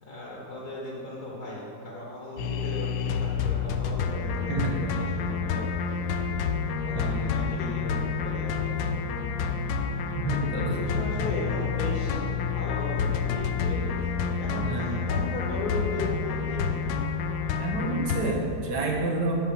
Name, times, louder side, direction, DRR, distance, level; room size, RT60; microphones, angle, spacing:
voice 1, 0.0-5.7 6.8-8.7 10.7-16.9, left 1 dB, 65° left, -4 dB, 1.8 m, -36 dB
sound 1, 2.4-18.3, left 6 dB, 90° left, 1.3 m, -29 dB
voice 2, 4.5-4.8 6.9-7.3 10.2-10.8 14.6-14.9 17.6-19.3, right 2 dB, 85° right, -1 dB, 1.7 m, -29 dB
11.5 x 4.2 x 6.9 m, 2.7 s
omnidirectional pair, 1.8 m